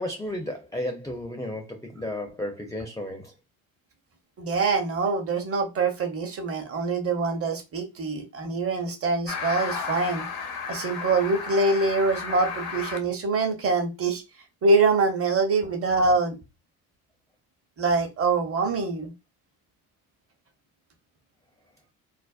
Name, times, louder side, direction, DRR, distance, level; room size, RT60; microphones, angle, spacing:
voice 1, 0.0-3.3, left 1 dB, 10° left, 0.5 m, -33 dB
voice 2, 4.4-10.3 10.7-14.2 14.6-16.4 17.8-19.1, right 3 dB, 35° right, 0.9 m, -24 dB
sound 1, 9.3-13.0, left 5 dB, 65° left, 0.7 m, -33 dB
2.6 x 2.0 x 2.3 m
hypercardioid pair, 55°, 39 cm